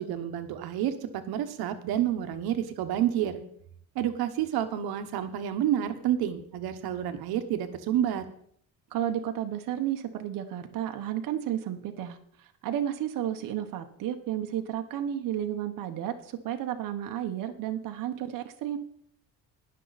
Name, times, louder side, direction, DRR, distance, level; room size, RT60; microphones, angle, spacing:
voice 1, 0.0-3.4 3.9-8.2, right 11 dB, 85° right, 9 dB, 1.2 m, -29 dB
voice 2, 8.9-12.2 12.6-18.8, right 11 dB, 60° right, 6 dB, 1.1 m, -32 dB
19.5 x 6.6 x 4.1 m, 0.65 s
cardioid pair, 165°, 36 cm